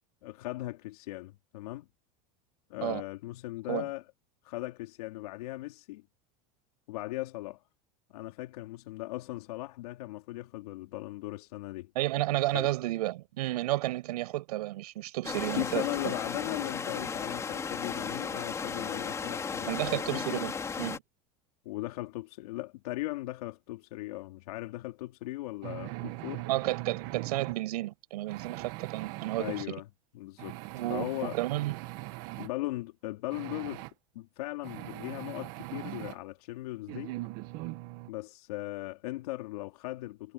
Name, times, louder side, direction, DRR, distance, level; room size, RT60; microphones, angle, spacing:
voice 1, 0.2-1.9 2.7-4.0 4.4-6.1 6.9-7.6 8.1-11.9 12.5-12.7 15.6-20.4 21.6-26.5 29.4-29.9 30.1-30.6 30.9-31.4 32.4-33.9 34.1-37.1 38.1-40.3, left 18 dB, 80° left, 3.8 m, -38 dB
voice 2, 11.9-15.8 19.7-21.0 26.5-29.7 30.7-31.8, right 17 dB, 85° right, 7.7 m, -32 dB
sound 1, 15.2-21.0, left 5 dB, 15° left, 3.9 m, -35 dB
sound 2, 25.6-27.6 28.3-29.7 30.4-32.5 33.3-33.9 34.6-36.2 36.9-38.1, right 19 dB, 50° right, 1.8 m, -40 dB
supercardioid pair, 165°, 20 cm